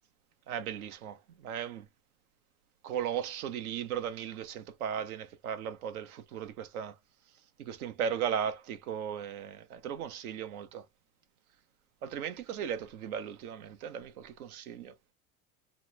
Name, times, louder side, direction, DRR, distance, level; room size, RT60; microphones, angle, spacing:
voice 1, 0.5-1.9 2.8-7.0 7.6-10.8 12.0-14.9, right 8 dB, 85° right, 0.7 m, -36 dB
2.9 x 2.0 x 3.1 m
supercardioid pair, 105°, 43 cm